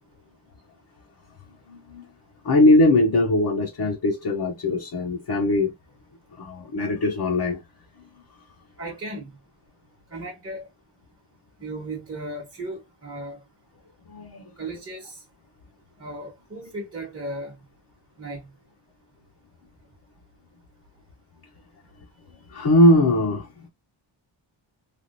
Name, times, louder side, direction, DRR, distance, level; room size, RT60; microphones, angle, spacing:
voice 1, 1.7-2.1 2.4-5.7 6.4-7.6 14.1-14.5 22.5-23.7, left 1 dB, 45° left, 0.8 m, -20 dB
voice 2, 8.8-9.3 10.1-10.7 11.6-13.4 14.6-15.2 16.0-17.6 18.2-18.5, right 1 dB, 25° right, 1.0 m, -35 dB
3.4 x 2.4 x 2.5 m
wide cardioid pair, 125°, 50 cm